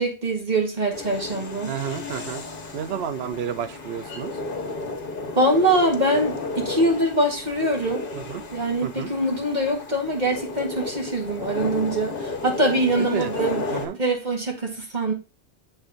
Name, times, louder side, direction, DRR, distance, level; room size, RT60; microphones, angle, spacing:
voice 1, 0.0-1.8 5.4-8.0 8.5-13.7 14.0-15.1, right 1 dB, 40° right, 1 dB, 1.7 m, -23 dB
sound 1, 0.9-13.9, left 3 dB, 55° left, 1.3 m, -33 dB
voice 2, 1.7-2.4 2.7-4.3 8.1-8.4 8.8-9.1 13.0-13.3 13.7-14.0, right 9 dB, 70° right, 11 dB, 0.9 m, -30 dB
7.9 x 3.5 x 3.8 m, 0.32 s
omnidirectional pair, 1.1 m